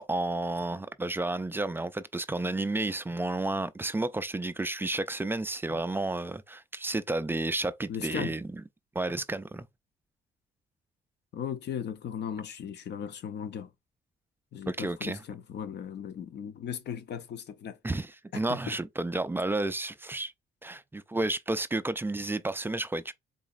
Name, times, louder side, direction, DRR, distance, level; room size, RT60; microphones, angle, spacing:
voice 1, 0.0-8.5 9.0-9.7 14.7-15.2 17.8-20.3 20.6-23.1, right 2 dB, 10° right, 0.3 m, -31 dB
voice 2, 7.9-8.3 11.3-13.7 14.5-17.8 18.3-18.8, left 8 dB, 60° left, 0.6 m, -37 dB
4.0 x 2.9 x 2.4 m
cardioid pair, 90°, 20 cm